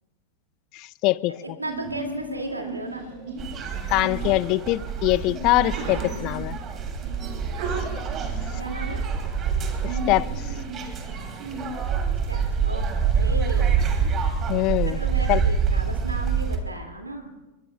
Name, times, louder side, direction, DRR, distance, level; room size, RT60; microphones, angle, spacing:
voice 1, 0.7-1.6 3.9-6.6 9.8-10.3 14.5-15.0 15.3-15.4, left 19 dB, 40° left, 20 dB, 0.5 m, -23 dB
voice 2, 1.4-3.1 8.6-9.0 12.3-12.8 13.1-13.8 14.9-17.3, right 2 dB, 85° right, 3 dB, 2.4 m, -34 dB
Sneeze, 1.6-11.6, right 2 dB, 50° right, 7.5 m, -37 dB
sound 1, 3.4-16.6, right 6 dB, 30° right, 2.8 m, -26 dB
26.5 x 23.0 x 2.3 m, 1.1 s
figure-of-eight pair, 90°, 0 cm